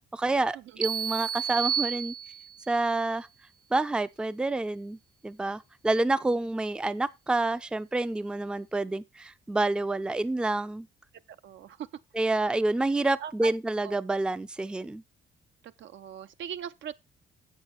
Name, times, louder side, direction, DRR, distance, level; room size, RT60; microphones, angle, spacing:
voice 1, 0.0-2.1 2.7-3.3 3.7-5.0 5.2-10.9 12.2-15.0, right 2 dB, 5° right, 0.4 m, -28 dB
sound 1, 0.8-2.7, right 8 dB, 45° right, 1.0 m, -31 dB
voice 2, 6.0-6.4 11.3-11.9 12.3-12.5 13.2-13.5 13.8-13.9 15.6-16.9, right 9 dB, 70° right, 0.6 m, -41 dB
7.5 x 7.5 x 4.3 m
cardioid pair, 90°, 20 cm